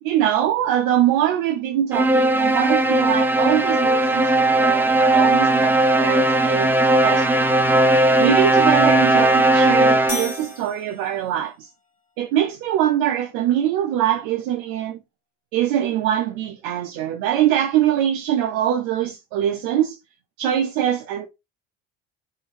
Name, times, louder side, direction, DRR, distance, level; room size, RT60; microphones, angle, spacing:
voice 1, 0.0-6.8 7.0-7.5 8.2-11.7 12.2-15.0 15.5-20.0 20.4-21.3, right 11 dB, 70° right, 0.6 m, -23 dB
sound 1, 1.9-10.5, right 2 dB, 5° right, 0.5 m, -17 dB
sound 2, 10.1-11.5, left 1 dB, 10° left, 1.7 m, -33 dB
3.1 x 2.7 x 3.4 m
supercardioid pair, 85°, 37 cm